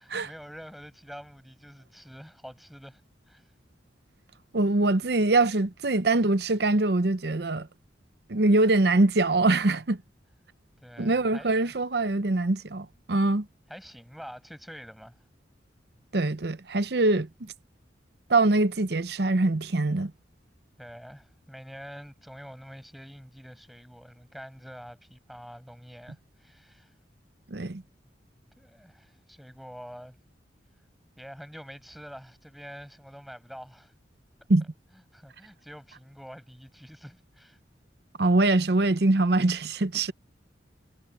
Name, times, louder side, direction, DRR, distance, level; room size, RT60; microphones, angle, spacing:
voice 1, 0.0-3.0 3.3-3.5 10.8-11.7 13.7-15.2 20.8-26.9 28.6-30.2 31.2-33.9 35.1-37.6, equal, ahead, 8.0 m, -46 dB
voice 2, 4.5-7.7 8.3-10.0 11.0-13.5 16.1-17.5 18.3-20.1 27.5-27.8 34.5-34.6 38.2-40.1, right 2 dB, 60° right, 0.8 m, -23 dB
head